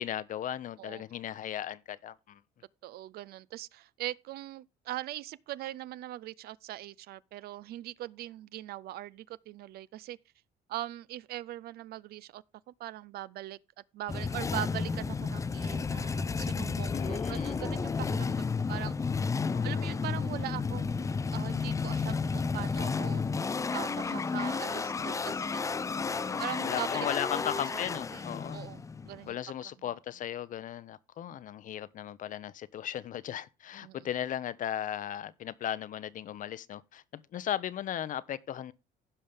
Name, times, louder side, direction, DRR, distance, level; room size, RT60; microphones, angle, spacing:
voice 1, 0.0-2.4 16.9-17.6 19.5-19.9 26.1-28.6 29.3-38.7, left 10 dB, 50° left, 0.7 m, -37 dB
voice 2, 2.8-10.2 10.7-13.6 13.9-19.2 19.6-23.2 23.7-25.6 26.4-27.1 27.5-27.6 27.9-28.2 28.5-29.4 33.8-34.0, right 14 dB, 65° right, 0.5 m, -41 dB
sound 1, 14.1-29.3, left 5 dB, 20° left, 0.4 m, -32 dB
15.5 x 5.5 x 3.5 m
cardioid pair, 110°, 17 cm